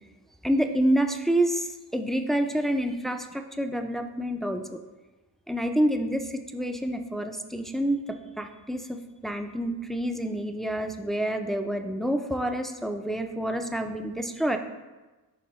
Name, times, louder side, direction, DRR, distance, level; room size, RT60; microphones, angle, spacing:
voice 1, 0.4-1.7 1.9-4.8 5.5-14.6, right 1 dB, ahead, 5 dB, 0.3 m, -28 dB
10.5 x 3.6 x 3.0 m, 1.2 s
wide cardioid pair, 105°, 40 cm